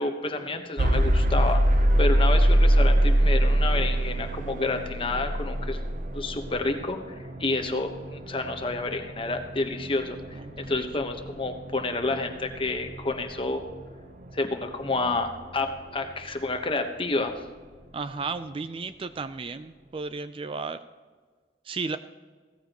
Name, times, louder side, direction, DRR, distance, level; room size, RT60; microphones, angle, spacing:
voice 1, 0.0-5.8 6.1-13.6 14.3-17.3, left 2 dB, 30° left, 6 dB, 1.1 m, -29 dB
sound 1, 0.8-16.7, right 1 dB, 45° right, 0.8 m, -25 dB
voice 2, 10.3-10.8 17.9-20.8 21.7-22.0, right 4 dB, 30° right, 12 dB, 0.4 m, -34 dB
16.5 x 14.0 x 3.0 m, 1.5 s
head